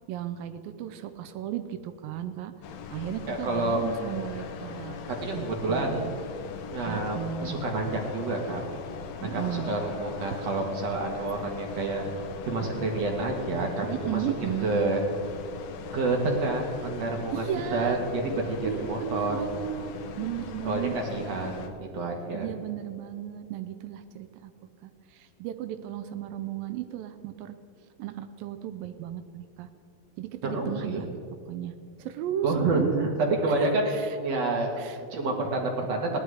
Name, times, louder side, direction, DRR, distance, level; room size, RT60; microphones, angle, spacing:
voice 1, 0.1-2.5 2.9-5.0 5.3-6.1 6.9-7.6 9.2-9.7 13.9-14.7 17.3-18.0 18.7-21.5 22.3-24.5 24.8-27.6 28.0-29.7 30.2-31.1 31.5-31.7 32.0-33.1 33.9-34.2 34.8-35.0, right 11 dB, 85° right, 9 dB, 2.4 m, -35 dB
sound 1, 2.6-21.7, left 6 dB, 90° left, 2.8 m, -40 dB
voice 2, 3.3-3.8 5.1-6.1 6.7-8.8 9.3-12.1 12.4-15.0 15.9-19.4 20.6-22.5 30.4-31.0 32.4-36.1, right 2 dB, 55° right, 1 dB, 2.5 m, -29 dB
18.0 x 11.5 x 4.8 m, 2.5 s
omnidirectional pair, 4.0 m